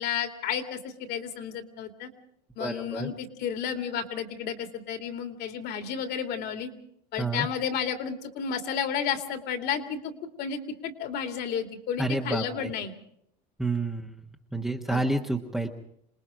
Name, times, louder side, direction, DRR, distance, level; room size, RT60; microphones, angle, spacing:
voice 1, 0.0-2.1 2.6-6.7 7.1-10.1 10.4-12.9 14.9-15.0, left 8 dB, 50° left, 7 dB, 2.7 m, -32 dB
voice 2, 2.6-3.1 7.2-7.5 12.0-12.7 13.6-14.1 14.5-15.7, right 2 dB, ahead, 1 dB, 1.3 m, -29 dB
27.5 x 19.5 x 5.1 m, 0.71 s
supercardioid pair, 120°, 21 cm